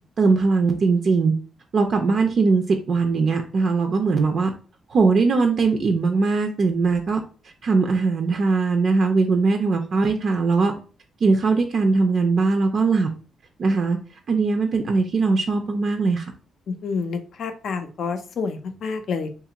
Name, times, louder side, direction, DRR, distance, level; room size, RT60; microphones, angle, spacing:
voice 1, 0.2-1.3 1.7-4.5 4.9-7.2 7.6-10.7 11.2-13.1 13.6-14.0 14.3-16.3, right 4 dB, 50° right, 4 dB, 0.4 m, -20 dB
voice 2, 16.7-19.3, left 5 dB, 65° left, 8 dB, 0.4 m, -28 dB
2.9 x 2.4 x 2.8 m, 0.37 s
cardioid pair, 115°, 0 cm